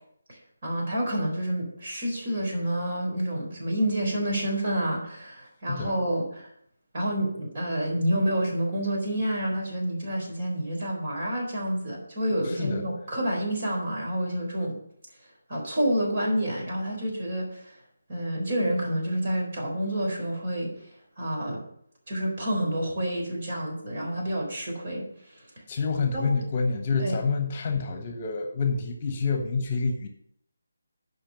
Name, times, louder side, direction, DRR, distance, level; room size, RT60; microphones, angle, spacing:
voice 1, 0.3-6.5 6.9-14.8 15.5-17.7 18.1-20.7 21.2-21.6 22.1-25.0 26.1-26.3 27.0-27.2, right 1 dB, 45° right, -1 dB, 4.0 m, -28 dB
voice 2, 12.4-12.9 25.7-30.1, left 4 dB, 35° left, 6 dB, 1.1 m, -28 dB
8.8 x 5.4 x 6.9 m, 0.68 s
figure-of-eight pair, 155°, 0 cm